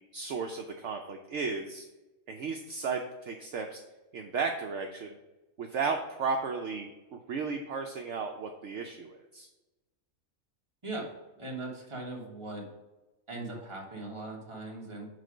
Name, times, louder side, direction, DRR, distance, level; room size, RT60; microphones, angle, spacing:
voice 1, 0.1-1.9 2.3-3.8 4.1-5.2 5.6-9.5, right 4 dB, 65° right, 3 dB, 0.9 m, -34 dB
voice 2, 11.4-12.6 13.3-15.1, right 2 dB, 20° right, -2 dB, 1.4 m, -39 dB
6.5 x 4.2 x 5.0 m, 1.1 s
omnidirectional pair, 1.4 m